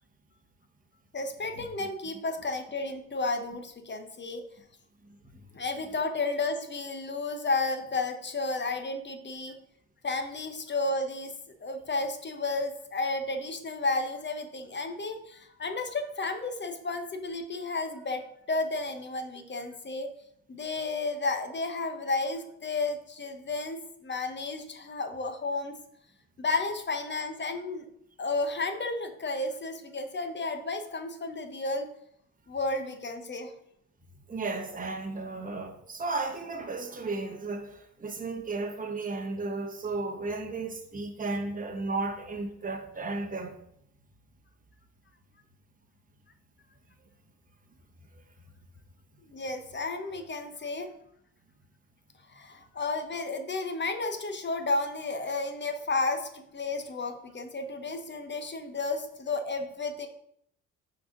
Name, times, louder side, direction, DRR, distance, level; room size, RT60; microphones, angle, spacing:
voice 1, 1.1-4.4 5.5-9.6 10.0-11.3 11.6-18.2 18.5-20.1 20.5-25.8 26.4-27.8 28.2-31.9 32.5-33.5 49.3-50.9 52.3-60.1, left 3 dB, 25° left, 7 dB, 1.0 m, -32 dB
voice 2, 34.3-43.5, right 3 dB, 15° right, 4 dB, 1.3 m, -34 dB
6.3 x 5.1 x 3.8 m, 0.73 s
figure-of-eight pair, 50°, 46 cm